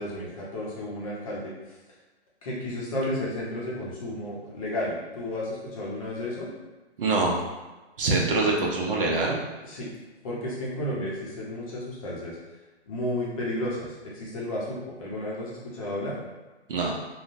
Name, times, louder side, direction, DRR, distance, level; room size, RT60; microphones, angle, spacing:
voice 1, 0.0-1.5 2.4-6.5 9.6-9.9 10.2-12.3 12.9-16.2, left 1 dB, 30° left, -5 dB, 0.7 m, -32 dB
voice 2, 7.0-7.4 8.0-9.4 16.7-16.9, right 3 dB, 55° right, -1 dB, 0.7 m, -24 dB
3.6 x 2.2 x 2.6 m, 1.1 s
hypercardioid pair, 150°, 34 cm